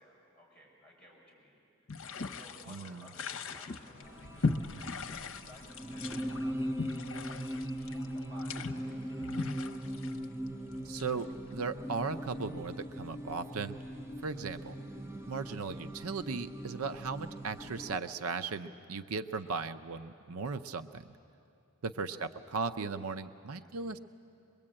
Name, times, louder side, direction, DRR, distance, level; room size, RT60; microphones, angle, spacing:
voice 1, 0.0-1.5 2.3-9.4 22.1-22.5 23.6-23.7, left 1 dB, 5° left, -4 dB, 6.8 m, -57 dB
sound 1, 1.9-11.4, left 4 dB, 65° left, 0.9 m, -39 dB
voice 2, 2.7-3.0 10.8-11.3 11.5-13.8 14.2-14.8 15.3-21.1 21.8-24.0, right 4 dB, 80° right, 10 dB, 0.6 m, -37 dB
sound 2, 4.0-18.0, equal, 10° right, 0.7 m, -40 dB
23.0 x 22.0 x 8.8 m, 2.7 s
head